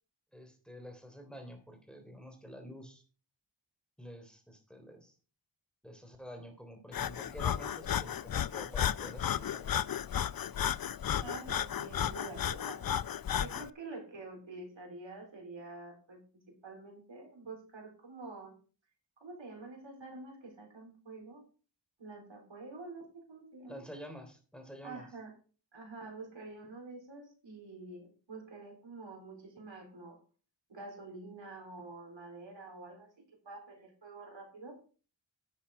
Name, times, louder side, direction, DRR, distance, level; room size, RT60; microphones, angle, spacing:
voice 1, 0.3-3.0 4.0-5.2 5.8-9.7 23.7-25.1, equal, ahead, 5 dB, 3.2 m, -49 dB
Breathing, 6.9-13.7, left 9 dB, 50° left, 0.5 m, -34 dB
voice 2, 11.2-12.9 13.4-18.5 19.2-21.4 22.0-23.8 24.8-25.3 25.7-30.2 30.7-33.1 33.4-34.8, right 3 dB, 70° right, 2 dB, 4.2 m, -47 dB
10.5 x 7.3 x 4.8 m, 0.39 s
cardioid pair, 45°, 46 cm